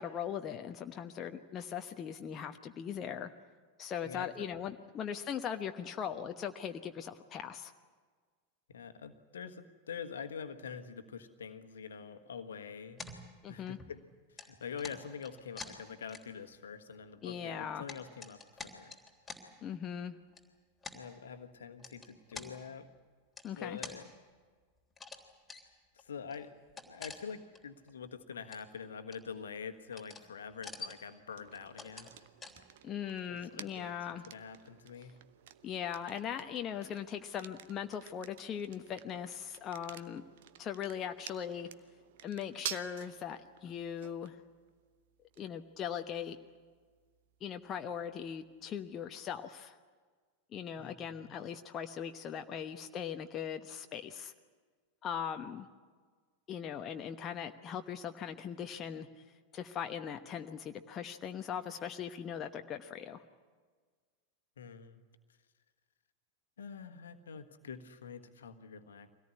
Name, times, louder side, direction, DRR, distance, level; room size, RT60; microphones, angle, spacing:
voice 1, 0.0-3.3 3.8-7.7 13.4-13.8 17.2-17.8 19.6-20.2 23.4-23.8 32.8-34.2 35.6-40.2 40.6-41.7 42.2-44.4 45.4-46.4 47.4-49.8 50.5-54.3 55.0-55.7 56.5-59.1 59.5-63.2, left 8 dB, 30° left, 6 dB, 1.0 m, -40 dB
voice 2, 4.0-4.5 8.7-13.0 13.5-19.0 20.9-22.9 23.6-24.1 25.9-26.5 26.8-32.1 33.3-33.9 34.3-35.1 50.8-51.3 64.6-65.0 66.6-69.1, left 6 dB, 65° left, 8 dB, 1.5 m, -45 dB
sound 1, 13.0-14.0 14.4-16.6 16.9-17.0 17.5-19.4 20.3-20.4 20.8-21.0 21.8-22.5 23.4-24.0 24.9-25.2 25.5-25.6 26.0-26.1 26.3-27.6 27.9-28.0 28.3-28.8 29.1-29.6 29.9-30.3 30.5-31.1 31.5-32.1 32.4-32.6, left 4 dB, 10° left, 3.4 m, -47 dB
sound 2, 31.3-49.0, right 12 dB, 55° right, 0.9 m, -51 dB
24.5 x 18.0 x 9.7 m, 1.5 s
figure-of-eight pair, 90°, 0 cm